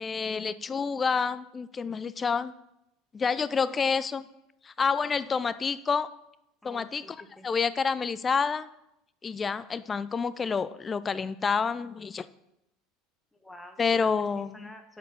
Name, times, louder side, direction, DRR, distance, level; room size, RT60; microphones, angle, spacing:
voice 1, 0.0-2.5 3.1-4.3 4.6-6.1 6.6-7.0 7.4-8.7 9.2-12.3 13.8-14.7, left 5 dB, 25° left, 15 dB, 0.3 m, -28 dB
voice 2, 6.6-7.5 13.3-14.1 14.5-15.0, left 1 dB, 10° left, 5 dB, 1.2 m, -49 dB
7.2 x 4.5 x 6.0 m, 0.84 s
hypercardioid pair, 80°, 0 cm